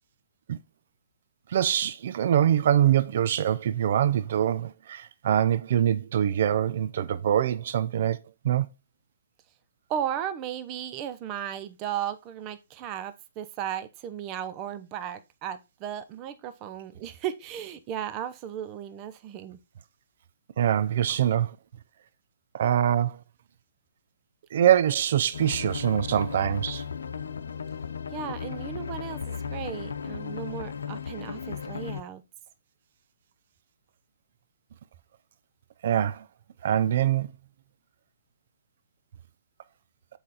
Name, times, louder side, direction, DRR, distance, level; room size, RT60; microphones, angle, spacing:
voice 1, 1.5-8.2 8.4-8.7 20.6-21.5 22.5-23.2 24.5-26.8 35.8-36.2 36.6-37.3, right 10 dB, 55° right, 0.5 m, -24 dB
voice 2, 9.9-19.6 28.1-32.2, right 10 dB, 30° right, 0.8 m, -35 dB
sound 1, 25.3-32.0, left 6 dB, 75° left, 0.8 m, -35 dB
7.5 x 5.1 x 4.1 m
hypercardioid pair, 135°, 0 cm